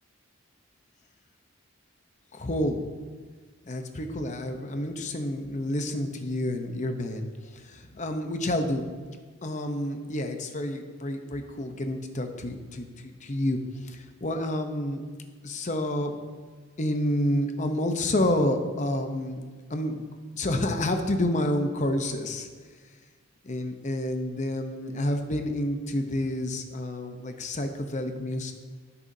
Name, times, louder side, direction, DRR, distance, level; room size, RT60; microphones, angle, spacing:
voice 1, 2.3-2.9 3.6-7.3 7.5-8.9 9.4-15.1 15.4-16.2 16.8-20.0 20.3-22.5 23.4-28.5, left 1 dB, 35° left, 5 dB, 0.8 m, -29 dB
16.0 x 7.0 x 2.7 m, 1.5 s
head